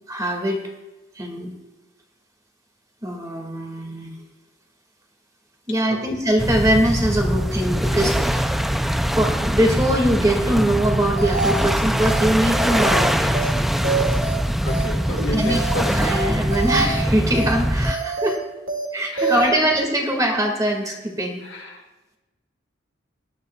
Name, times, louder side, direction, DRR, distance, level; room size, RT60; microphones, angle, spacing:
voice 1, 0.1-0.6 1.2-1.5 3.0-4.1 5.7-8.7 9.2-13.7 15.2-18.4 18.9-21.4, right 1 dB, 20° right, 2 dB, 2.0 m, -22 dB
sound 1, 6.4-17.9, equal, ahead, 0.4 m, -22 dB
sound 2, 11.2-11.7 12.0-12.2 12.5-13.0 13.3-13.5 13.8-14.4 14.7-14.9 15.2-15.7 16.0-16.2 16.5-17.0 17.3-17.5 17.8-18.4 18.7-18.9 19.2-19.5, right 3 dB, 80° right, 2.2 m, -26 dB
voice 2, 14.6-16.0 19.1-19.6 21.4-21.8, left 2 dB, 70° left, 0 dB, 1.7 m, -32 dB
19.0 x 11.5 x 2.3 m, 1.1 s
head